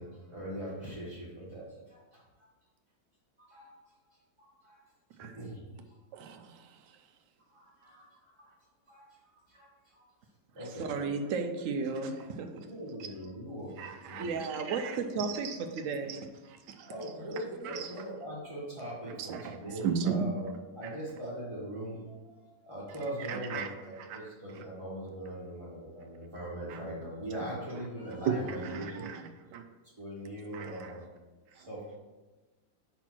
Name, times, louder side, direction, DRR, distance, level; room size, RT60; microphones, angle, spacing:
voice 1, 0.0-2.2 3.5-3.7 4.4-4.8 5.2-5.6 7.5-8.5 8.9-9.1 9.3-10.0 10.5-10.9 12.7-14.2 16.9-20.5 20.7-29.1 30.0-31.1 31.5-32.0, right 1 dB, 20° right, -9 dB, 1.5 m, -41 dB
voice 2, 6.1-6.5 13.8-14.3 14.7-15.0 15.3-15.6 16.1-16.2 16.8-16.9 17.6-17.9 19.1-20.3 23.3-23.7 24.1-24.2 24.5-24.6 26.7-26.8 28.2-28.3 28.6-29.6 30.5-30.9, right 7 dB, 85° right, 6 dB, 1.3 m, -35 dB
voice 3, 10.8-12.7 14.2-16.2 16.8-16.9 17.3-17.7, right 4 dB, 60° right, 6 dB, 0.9 m, -34 dB
5.3 x 4.5 x 6.0 m, 1.2 s
omnidirectional pair, 1.8 m